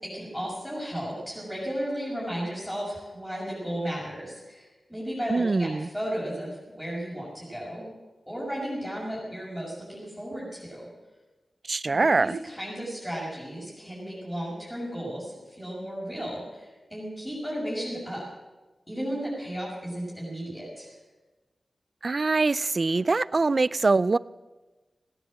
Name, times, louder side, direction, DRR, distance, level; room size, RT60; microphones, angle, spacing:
voice 1, 0.0-7.8 8.3-10.9 11.9-18.2 18.9-20.9, equal, 5° left, -6 dB, 6.4 m, -34 dB
voice 2, 5.3-5.9 11.7-12.3 22.0-24.2, right 3 dB, 50° right, 19 dB, 0.4 m, -23 dB
16.5 x 10.0 x 7.6 m, 1.2 s
cardioid pair, 60°, 0 cm